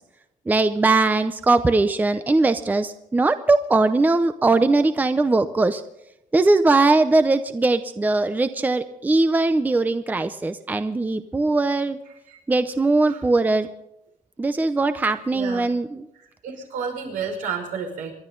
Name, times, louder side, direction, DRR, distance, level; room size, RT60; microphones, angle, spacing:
voice 1, 0.5-5.8 6.3-12.0 12.5-13.7 14.4-16.1, right 3 dB, 10° right, 11 dB, 0.6 m, -20 dB
voice 2, 15.3-15.7 16.2-18.1, right 6 dB, 75° right, 2 dB, 5.5 m, -31 dB
28.0 x 11.5 x 3.9 m, 0.83 s
cardioid pair, 165°, 14 cm